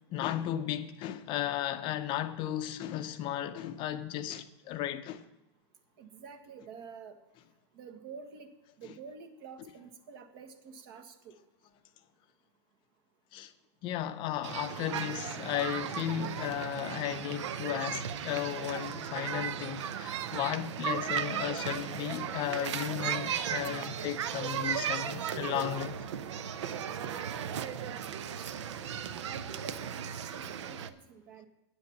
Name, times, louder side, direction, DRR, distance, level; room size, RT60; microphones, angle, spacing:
voice 1, 0.1-5.2 13.3-13.5 13.8-25.9, left 11 dB, 35° left, 0.5 m, -35 dB
voice 2, 6.0-7.2 7.7-8.5 8.8-11.3 27.5-28.0 28.2-28.8 29.3-31.5, right 6 dB, 55° right, 1.4 m, -48 dB
sound 1, 14.4-30.9, right 8 dB, 85° right, 0.7 m, -36 dB
9.6 x 7.9 x 5.8 m
supercardioid pair, 145°, 15 cm